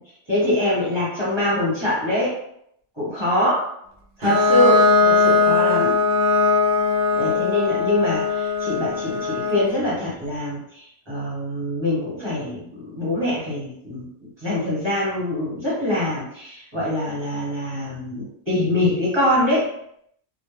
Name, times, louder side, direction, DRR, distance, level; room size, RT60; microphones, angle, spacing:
voice 1, 0.3-2.3 3.0-3.6 4.2-5.9 7.1-14.1 14.4-19.7, left 1 dB, 25° right, -8 dB, 1.1 m, -24 dB
Bowed string instrument, 4.2-9.8, left 4 dB, 55° right, 0.6 m, -19 dB
2.3 x 2.0 x 3.3 m, 0.73 s
omnidirectional pair, 1.2 m